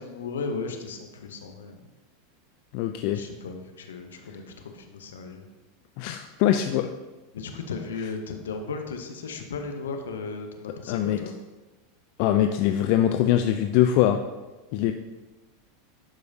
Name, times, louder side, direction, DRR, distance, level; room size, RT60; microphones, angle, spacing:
voice 1, 0.0-1.8 3.1-5.5 7.3-11.3, left 4 dB, 75° left, 5 dB, 0.8 m, -36 dB
voice 2, 2.7-3.2 6.0-6.9 10.9-11.2 12.2-14.2 14.7-14.9, left 11 dB, 55° left, 7 dB, 0.4 m, -22 dB
11.0 x 4.8 x 2.7 m, 1.2 s
hypercardioid pair, 90°, 0 cm